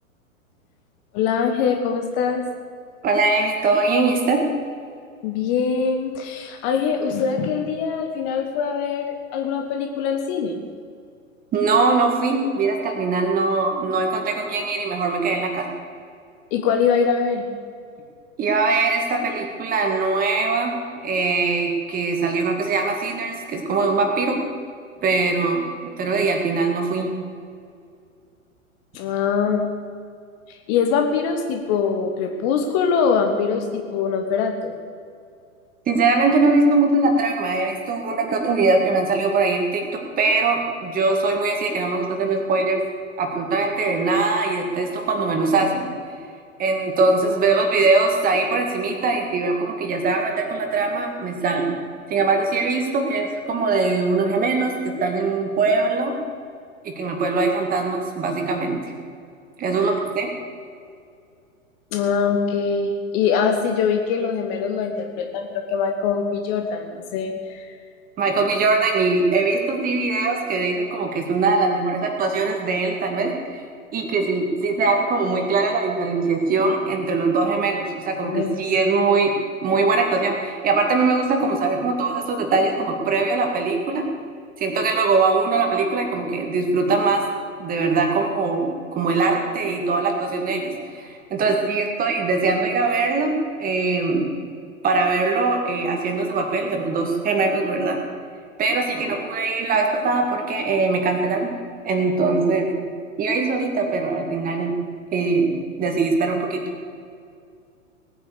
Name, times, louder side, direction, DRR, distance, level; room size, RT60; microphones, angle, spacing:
voice 1, 1.1-2.4 5.2-10.6 16.5-17.4 28.9-29.7 30.7-34.7 61.9-67.7 78.2-78.6, left 6 dB, 30° left, 4 dB, 1.4 m, -23 dB
voice 2, 3.0-4.4 11.5-15.7 18.4-20.7 21.0-24.4 25.0-25.7 26.0-27.1 35.9-42.8 43.2-45.9 46.6-51.7 52.1-56.1 56.8-58.9 59.6-60.3 68.2-73.6 73.9-79.3 79.6-84.0 84.6-87.2 87.6-94.3 94.8-98.0 98.6-101.5 101.8-102.7 103.2-104.7 105.1-106.6, right 3 dB, 20° right, 3 dB, 2.2 m, -21 dB
19.0 x 9.4 x 6.8 m, 2.3 s
figure-of-eight pair, 105°, 42 cm